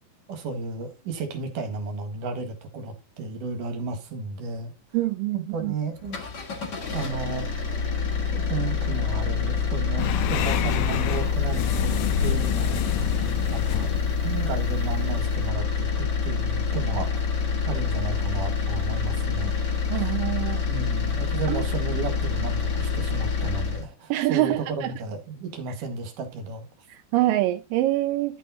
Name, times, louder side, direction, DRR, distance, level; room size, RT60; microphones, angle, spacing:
voice 1, 0.3-4.7 5.3-6.2 6.9-7.5 8.3-13.1 13.5-13.9 14.2-19.5 19.9-20.0 20.6-26.6, right 4 dB, 60° right, 3.2 m, -33 dB
voice 2, 4.9-5.7 19.9-20.6 21.5-21.6 24.1-24.9 26.9-28.4, right 16 dB, 80° right, 2.1 m, -25 dB
sound 1, 6.0-23.9, left 5 dB, 35° left, 2.0 m, -26 dB
sound 2, 10.0-15.5, left 10 dB, 80° left, 2.5 m, -29 dB
11.5 x 5.6 x 3.8 m
omnidirectional pair, 4.4 m